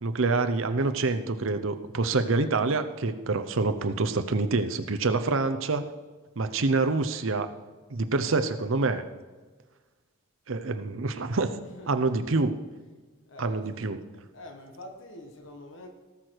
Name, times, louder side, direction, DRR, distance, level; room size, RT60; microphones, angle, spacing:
voice 1, 0.0-5.8 6.4-7.5 7.9-9.0 10.5-11.5 11.9-12.6 13.4-14.0, right 3 dB, 70° right, 0.8 m, -26 dB
voice 2, 11.6-12.2 13.3-13.8 14.3-15.9, left 1 dB, 65° left, 1.3 m, -46 dB
17.5 x 6.6 x 4.6 m
head